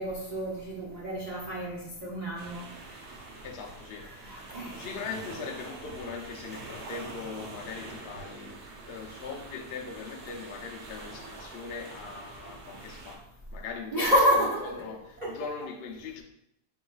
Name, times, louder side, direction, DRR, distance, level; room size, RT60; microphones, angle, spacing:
voice 1, 0.0-2.7 4.0-4.8 13.9-14.7 15.2-15.3, equal, 45° right, 0.5 m, -28 dB
sound 1, 2.4-13.2, right 3 dB, 70° right, 1.3 m, -45 dB
voice 2, 3.4-8.6 8.9-13.3 13.5-14.1 14.6-16.2, left 4 dB, 75° left, 0.5 m, -40 dB
6.3 x 3.1 x 2.3 m
omnidirectional pair, 1.8 m